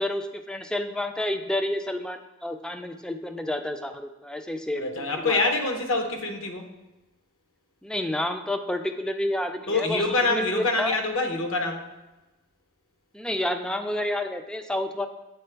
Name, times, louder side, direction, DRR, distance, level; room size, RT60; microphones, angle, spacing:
voice 1, 0.0-5.5 7.8-11.0 13.1-15.1, left 1 dB, 5° left, 6 dB, 0.3 m, -30 dB
voice 2, 4.8-6.7 9.7-11.8, left 3 dB, 65° left, 4 dB, 0.8 m, -25 dB
8.7 x 3.7 x 3.3 m, 1.0 s
head